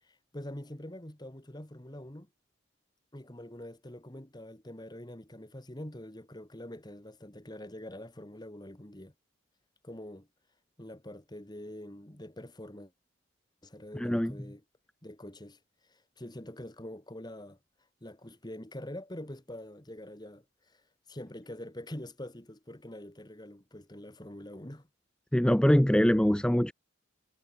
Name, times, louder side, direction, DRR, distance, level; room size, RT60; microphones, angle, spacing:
voice 1, 0.0-2.3 3.1-9.1 9.8-10.3 10.8-12.9 13.6-14.6 15.0-17.6 18.0-20.8 21.1-24.9, left 1 dB, 20° left, 1.7 m, -45 dB
voice 2, 13.9-14.3 25.3-26.7, equal, 5° left, 0.4 m, -23 dB
head